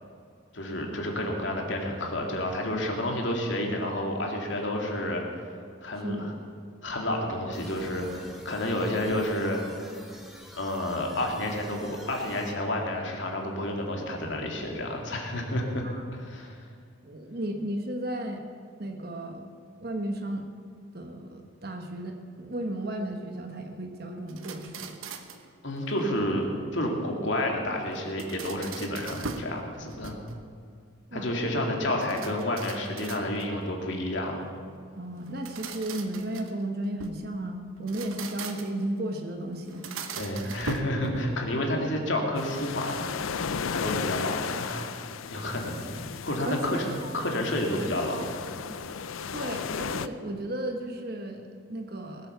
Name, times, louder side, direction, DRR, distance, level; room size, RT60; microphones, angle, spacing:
voice 1, 0.5-5.2 5.8-6.3 6.8-10.0 10.5-15.8 16.1-16.7 25.6-26.5 26.7-30.2 31.1-34.4 40.2-43.2 43.7-44.9 45.3-48.3, left 1 dB, 65° left, 1 dB, 2.4 m, -30 dB
voice 2, 6.0-6.4 15.8-16.0 17.0-18.4 18.8-19.4 19.8-20.5 20.9-25.0 31.1-31.3 34.9-39.8 40.4-40.5 46.5-46.8 48.7-48.8 49.3-52.3, right 1 dB, 50° right, 4 dB, 1.2 m, -34 dB
sound 1, 7.5-12.5, equal, ahead, 1.5 m, -47 dB
sound 2, 24.3-25.5 27.9-29.6 29.9-30.5 32.0-33.6 35.2-37.2 37.8-38.9 39.6-41.5, right 4 dB, 90° right, 1.1 m, -40 dB
sound 3, 42.4-50.1, left 6 dB, 85° left, 0.5 m, -35 dB
20.0 x 8.1 x 6.8 m, 2.3 s
head